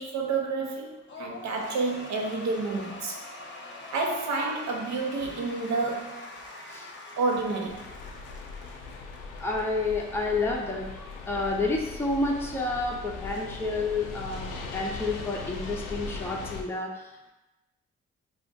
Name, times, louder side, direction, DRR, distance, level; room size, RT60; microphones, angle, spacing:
voice 1, 0.0-3.2 3.9-6.3 7.2-7.9, right 3 dB, 60° right, 1 dB, 0.7 m, -29 dB
Cheering / Applause / Crowd, 1.1-9.7, left 2 dB, 35° left, 0.8 m, -44 dB
sound 1, 7.7-16.6, left 4 dB, 85° left, 0.5 m, -39 dB
voice 2, 9.4-14.5 14.7-17.1, left 3 dB, 5° left, -1 dB, 0.6 m, -30 dB
2.5 x 2.4 x 3.9 m, 0.97 s
hypercardioid pair, 45°, 31 cm